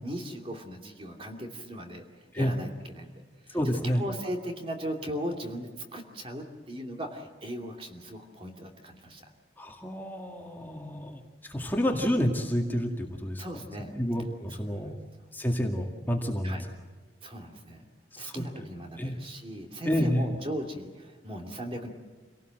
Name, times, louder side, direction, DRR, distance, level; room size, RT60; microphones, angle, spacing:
voice 1, 0.0-3.1 3.4-3.6 3.8-9.2 13.4-13.9 14.7-14.9 16.4-16.6 17.2-17.9 18.2-21.9, equal, 30° right, 3 dB, 2.8 m, -38 dB
voice 2, 3.5-4.0 9.6-13.4 14.0-15.0 15.3-16.6 18.1-18.7 19.0-19.2 19.9-20.4, equal, 10° left, 1 dB, 2.1 m, -29 dB
27.0 x 18.0 x 7.8 m, 1.5 s
head